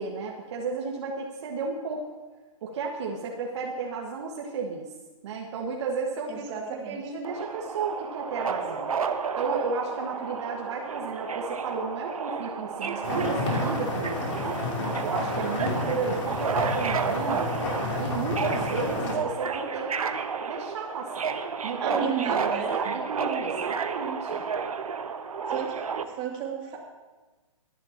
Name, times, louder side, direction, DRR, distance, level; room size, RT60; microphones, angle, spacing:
voice 1, 0.0-2.0 2.6-4.9 5.2-6.4 6.9-8.9 9.4-14.6 15.1-17.5 18.0-20.1 20.5-21.3 21.6-22.1 22.5-24.4, right 4 dB, 55° right, -1 dB, 1.8 m, -33 dB
voice 2, 6.3-7.1 15.9-16.1 21.8-22.7 25.5-26.8, right 7 dB, 30° right, -1 dB, 2.8 m, -34 dB
Subway metro underground, 7.2-26.0, right 6 dB, 80° right, 1.1 m, -31 dB
sound 1, 13.0-19.2, left 3 dB, 60° left, 3.3 m, -31 dB
26.0 x 10.5 x 3.0 m, 1.2 s
hypercardioid pair, 140°, 18 cm